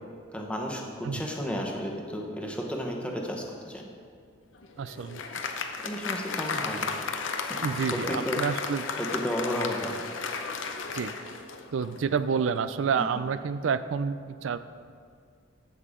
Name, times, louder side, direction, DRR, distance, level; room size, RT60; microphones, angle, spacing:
voice 1, 0.3-3.9 5.8-6.9 7.3-7.6 7.9-8.4 9.0-9.9 12.9-13.2, equal, 5° left, 0 dB, 1.0 m, -33 dB
Applause, 4.5-12.1, left 4 dB, 75° left, 0.7 m, -34 dB
voice 2, 4.8-5.2 7.6-8.8 10.9-11.1 11.7-14.6, right 6 dB, 75° right, 13 dB, 0.4 m, -29 dB
14.5 x 5.8 x 3.7 m, 2.2 s
head